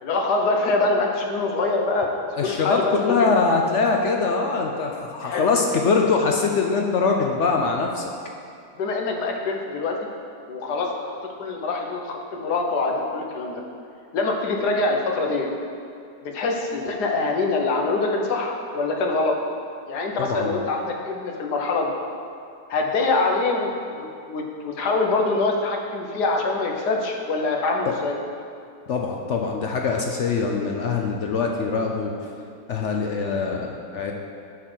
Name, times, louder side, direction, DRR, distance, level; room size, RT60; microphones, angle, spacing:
voice 1, 0.0-2.1 2.4-3.3 5.2-5.5 8.8-9.9 10.5-13.6 14.1-15.5 16.2-19.4 19.9-21.9 22.7-28.2, left 3 dB, 85° left, 1 dB, 1.5 m, -24 dB
voice 2, 2.4-8.0 20.2-20.5 28.9-32.1 32.7-34.1, left 4 dB, 60° left, 1 dB, 0.8 m, -23 dB
9.8 x 4.2 x 6.2 m, 2.5 s
omnidirectional pair, 1.7 m